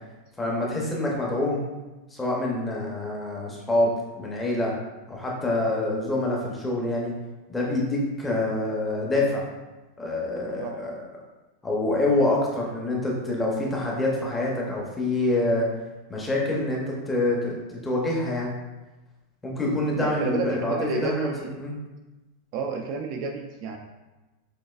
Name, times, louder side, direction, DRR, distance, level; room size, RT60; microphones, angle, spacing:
voice 1, 0.4-1.6 2.1-4.7 5.1-7.1 7.5-9.5 10.0-10.9 11.6-15.7 16.1-17.6 17.8-18.5 19.4-21.3 21.6-21.7, left 2 dB, 10° left, -3 dB, 0.6 m, -26 dB
voice 2, 20.0-21.5 22.5-23.8, right 4 dB, 40° right, 3 dB, 0.3 m, -31 dB
6.2 x 2.5 x 2.4 m, 1.1 s
supercardioid pair, 170°, 0 cm